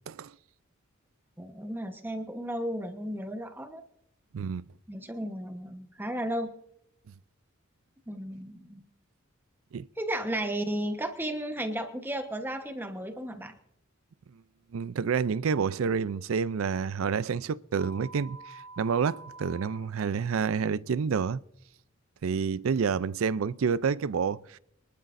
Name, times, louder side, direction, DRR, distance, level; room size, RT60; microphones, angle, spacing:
voice 1, 1.4-3.8 4.9-6.5 8.1-8.8 10.0-13.5, right 1 dB, 10° right, 1.1 m, -34 dB
voice 2, 4.3-4.6 9.7-9.9 14.7-18.4 18.8-21.4 22.2-24.6, right 6 dB, 75° right, 0.4 m, -28 dB
sound 1, 17.8-19.8, right 3 dB, 35° left, 2.1 m, -46 dB
23.5 x 12.0 x 2.6 m
head